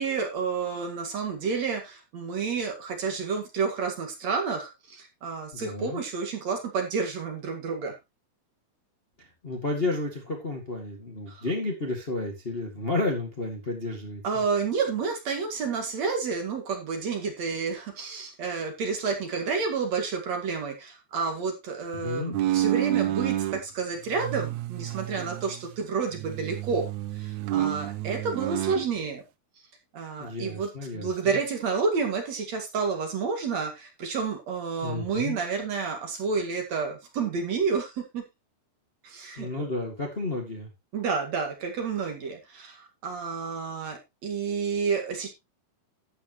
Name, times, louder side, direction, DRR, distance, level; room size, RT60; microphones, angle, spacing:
voice 1, 0.0-7.9 11.3-11.4 14.2-26.9 27.2-29.2 29.9-38.2 39.0-39.7 40.9-45.3, right 5 dB, 55° right, 3 dB, 3.0 m, -30 dB
voice 2, 5.5-6.0 9.4-14.2 21.9-22.4 30.2-31.4 34.8-35.4 39.4-40.7, left 2 dB, 25° left, 1 dB, 1.4 m, -31 dB
sound 1, 22.3-23.6 24.1-25.9 26.1-28.8, right 13 dB, 90° right, 1.6 m, -29 dB
12.5 x 8.7 x 3.0 m, 0.23 s
omnidirectional pair, 4.1 m